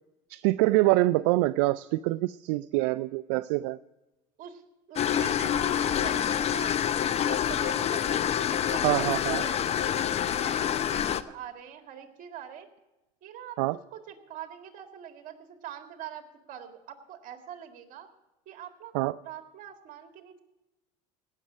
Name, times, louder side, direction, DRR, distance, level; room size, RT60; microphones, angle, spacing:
voice 1, 0.3-3.8 8.8-9.4 13.6-13.8 18.9-19.2, right 19 dB, 85° right, 14 dB, 0.4 m, -25 dB
voice 2, 4.9-9.1 9.4-9.9 10.2-12.7 13.2-18.1 18.5-18.9 19.2-20.4, right 9 dB, 55° right, 6 dB, 2.0 m, -44 dB
sound 1, 5.0-11.2, left 9 dB, 40° left, 0.7 m, -27 dB
17.0 x 6.6 x 8.3 m, 1.0 s
supercardioid pair, 105°, 16 cm